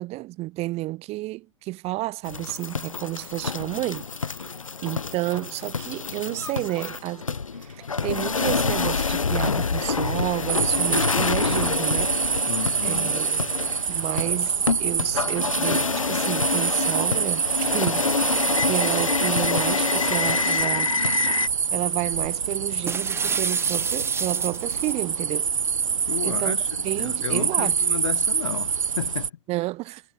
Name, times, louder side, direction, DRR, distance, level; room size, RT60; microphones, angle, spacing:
voice 1, 0.0-4.1 4.8-7.2 7.6-12.1 12.8-13.4 13.9-20.9 21.7-25.5 26.2-26.6 26.8-27.8 29.5-30.0, right 19 dB, 40° right, 6.0 m, -31 dB
sound 1, 2.3-21.5, left 5 dB, 85° left, 1.6 m, -27 dB
sound 2, 10.5-29.3, right 6 dB, 80° right, 1.3 m, -26 dB
voice 2, 12.5-13.2 26.1-29.3, left 10 dB, 65° left, 5.9 m, -33 dB
sound 3, 22.9-25.0, right 5 dB, 15° right, 1.2 m, -31 dB
figure-of-eight pair, 95°, 17 cm